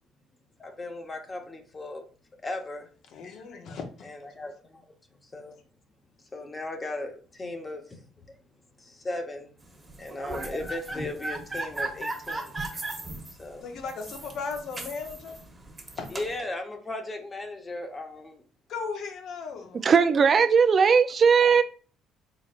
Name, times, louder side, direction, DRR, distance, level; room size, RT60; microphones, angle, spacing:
voice 1, 0.6-2.0 2.4-2.9 4.0-4.8 5.2-5.6 6.3-8.0 8.3-8.4 8.8-9.5 10.0-12.6 13.4-13.6 16.1-18.4, left 2 dB, 25° left, 0.9 m, -37 dB
voice 2, 3.1-4.1 13.6-15.4 16.0-16.1 18.7-19.9, left 5 dB, 65° left, 0.9 m, -36 dB
sound 1, 9.9-16.4, right 2 dB, 20° right, 1.1 m, -36 dB
voice 3, 19.8-21.6, right 6 dB, 45° right, 0.4 m, -19 dB
4.1 x 3.9 x 2.5 m
supercardioid pair, 85°, 0 cm